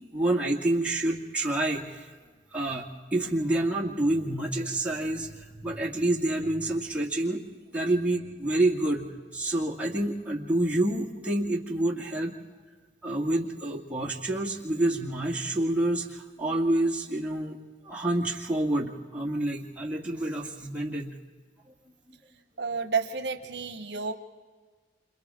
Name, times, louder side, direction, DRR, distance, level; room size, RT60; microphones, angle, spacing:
voice 1, 0.1-2.1 2.5-7.4 7.7-12.4 13.0-17.6 17.8-21.1, right 1 dB, 5° right, -3 dB, 2.1 m, -28 dB
voice 2, 22.6-24.1, right 5 dB, 65° right, 8 dB, 1.1 m, -30 dB
29.0 x 27.0 x 3.7 m, 1.5 s
head